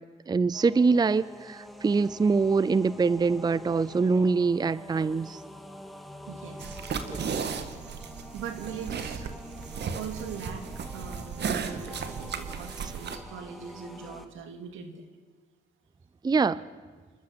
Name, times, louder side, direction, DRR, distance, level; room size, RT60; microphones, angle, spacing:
voice 1, 0.3-5.4 7.1-7.2 16.2-16.6, right 4 dB, 20° right, 19 dB, 0.5 m, -24 dB
sound 1, 0.5-14.3, equal, ahead, 2.0 m, -46 dB
voice 2, 6.3-6.8 8.3-9.2 9.9-10.7 10.9-15.1, right 7 dB, 85° right, 7 dB, 2.6 m, -40 dB
sound 2, 6.6-13.2, right 6 dB, 60° right, 1.9 m, -35 dB
28.5 x 12.5 x 8.2 m, 1.5 s
cardioid pair, 90°, 20 cm